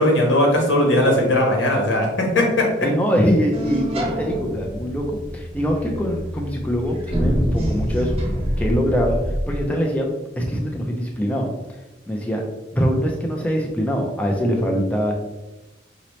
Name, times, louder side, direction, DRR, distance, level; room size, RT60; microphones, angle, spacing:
voice 1, 0.0-2.7, left 1 dB, 90° left, 0 dB, 1.2 m, -18 dB
voice 2, 2.8-9.2 9.5-10.1 10.4-11.5 12.1-12.4 12.7-15.1, equal, 10° left, 0 dB, 0.5 m, -23 dB
sound 1, 3.5-9.7, equal, 30° right, 0.8 m, -26 dB
5.0 x 2.9 x 3.1 m, 1.0 s
head